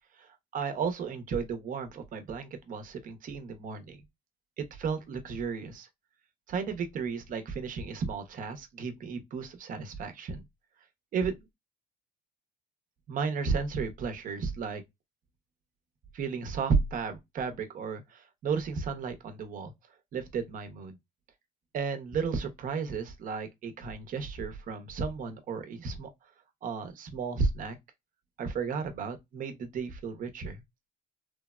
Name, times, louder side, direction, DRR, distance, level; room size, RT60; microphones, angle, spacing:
voice 1, 0.2-4.0 4.6-5.9 6.5-10.4 11.1-11.3 13.1-14.8 16.1-19.7 20.1-21.0 21.7-26.1 26.6-27.8 28.4-30.6, right 5 dB, 55° right, 0.7 m, -33 dB
3.3 x 2.1 x 2.3 m
cardioid pair, 110°, 17 cm